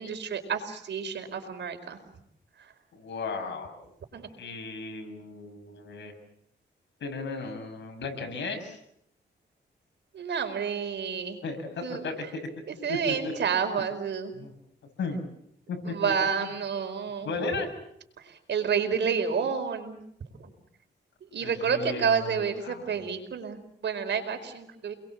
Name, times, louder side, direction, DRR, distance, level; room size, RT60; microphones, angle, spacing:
voice 1, 0.0-2.0 4.1-4.3 10.1-11.4 11.8-12.0 12.7-14.3 15.9-17.4 18.5-20.0 21.3-24.9, right 6 dB, 75° right, 7 dB, 4.9 m, -29 dB
voice 2, 2.9-3.9 4.4-6.1 7.0-8.8 11.4-12.5 12.9-13.3 14.3-14.5 15.0-15.3 15.7-15.9 16.4-16.5 17.2-17.7 21.4-23.1, left 3 dB, 80° left, 5 dB, 6.9 m, -35 dB
29.5 x 22.0 x 7.4 m, 0.73 s
cardioid pair, 90°, 19 cm